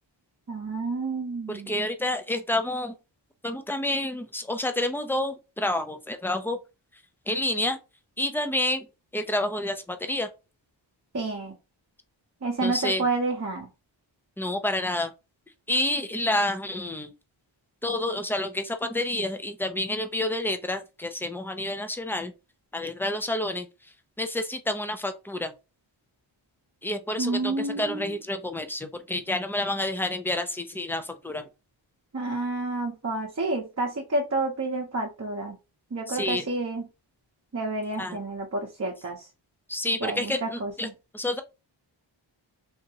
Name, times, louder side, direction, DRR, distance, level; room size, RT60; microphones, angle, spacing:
voice 1, 0.5-1.7 11.1-11.5 12.4-13.7 27.2-28.2 32.1-35.6 35.9-36.9 37.5-39.3 40.0-40.9, right 2 dB, 35° right, 0.8 m, -29 dB
voice 2, 1.5-2.9 3.4-6.6 7.3-7.8 8.2-8.9 9.1-10.3 12.6-13.1 14.4-15.1 15.7-17.1 17.8-22.3 22.7-23.7 24.2-25.5 26.8-31.4 36.1-36.5 38.0-38.2 39.7-40.9 41.1-41.4, left 1 dB, 5° left, 0.4 m, -29 dB
3.5 x 2.8 x 2.8 m
wide cardioid pair, 115°, 47 cm